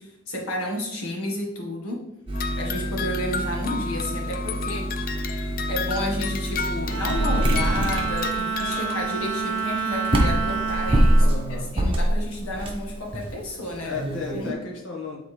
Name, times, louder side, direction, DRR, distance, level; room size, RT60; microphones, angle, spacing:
voice 1, 0.0-2.0 2.5-5.1 5.7-11.3 11.7-14.0 14.3-14.6, left 1 dB, 90° left, -1 dB, 1.6 m, -31 dB
sound 1, 2.3-9.0, left 6 dB, 40° left, 0.3 m, -33 dB
sound 2, 2.3-14.5, right 1 dB, 25° right, 0.9 m, -26 dB
Bowed string instrument, 6.9-12.4, right 6 dB, 60° right, 0.7 m, -29 dB
voice 2, 11.2-11.7 13.8-15.2, left 3 dB, 60° left, -2 dB, 1.5 m, -34 dB
7.7 x 4.1 x 3.3 m, 0.84 s
head